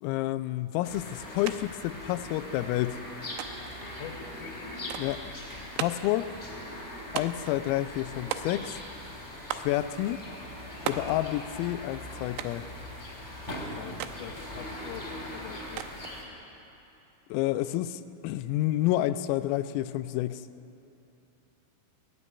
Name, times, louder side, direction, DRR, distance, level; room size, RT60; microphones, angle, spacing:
voice 1, 0.0-3.0 5.0-5.3 5.8-6.3 7.1-8.8 9.5-10.2 10.8-12.7 17.3-20.4, left 15 dB, 85° left, 12 dB, 3.3 m, -29 dB
sound 1, 0.8-16.2, left 1 dB, 10° left, 2.6 m, -41 dB
sound 2, 1.5-1.6 1.9-2.6 3.4-3.8 4.9-5.2 5.8-6.2 7.2-7.6 8.3-8.9 9.5-9.8 10.9-11.2 12.4-12.7 14.0-14.2 15.8-16.2, right 11 dB, 80° right, 2.9 m, -36 dB
voice 2, 3.8-4.5 13.8-15.9, left 8 dB, 70° left, -3 dB, 3.4 m, -44 dB
22.0 x 15.0 x 9.7 m, 2.9 s
omnidirectional pair, 6.0 m